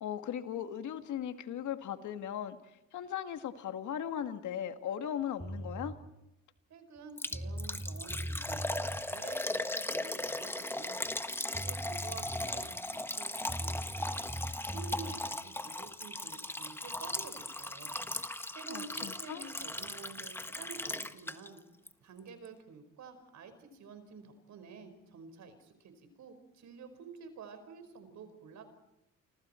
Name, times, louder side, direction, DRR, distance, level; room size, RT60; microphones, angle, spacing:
voice 1, 0.0-5.9 18.7-19.4, left 9 dB, 75° left, 8 dB, 2.0 m, -38 dB
sound 1, 5.4-6.0 7.0-7.1 7.3-9.0 11.2-11.3 11.5-12.7 13.5-15.2, right 1 dB, 10° right, 4.0 m, -40 dB
voice 2, 6.7-14.3 14.7-18.0 18.5-21.6 22.0-28.6, right 5 dB, 70° right, 8 dB, 5.1 m, -50 dB
Liquid, 7.2-21.6 21.9-22.0 22.4-22.5, left 1 dB, 10° left, 1.3 m, -38 dB
28.5 x 25.5 x 4.5 m, 0.89 s
cardioid pair, 90°, 30 cm